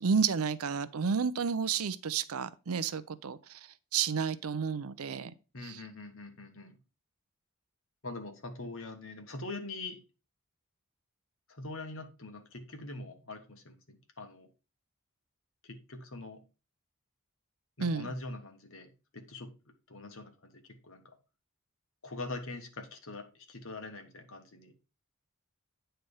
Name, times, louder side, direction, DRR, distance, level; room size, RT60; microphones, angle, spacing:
voice 1, 0.0-5.3 5.6-5.8 17.8-18.1, right 6 dB, 75° right, 0.6 m, -31 dB
voice 2, 5.5-6.8 8.0-10.0 11.5-14.5 15.6-16.4 17.8-19.5 19.9-21.0 22.0-24.7, left 2 dB, 65° left, 1.4 m, -43 dB
8.9 x 3.4 x 5.4 m
head